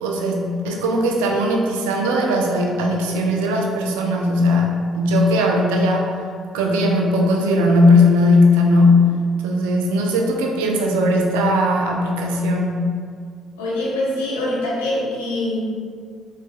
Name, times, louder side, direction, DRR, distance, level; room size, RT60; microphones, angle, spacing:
voice 1, 0.0-6.2 6.5-9.1 9.4-12.9, left 1 dB, 80° right, 1 dB, 0.4 m, -18 dB
voice 2, 13.6-15.6, left 1 dB, 85° left, -5 dB, 0.7 m, -24 dB
3.8 x 3.2 x 2.3 m, 2.1 s
hypercardioid pair, 50°, 0 cm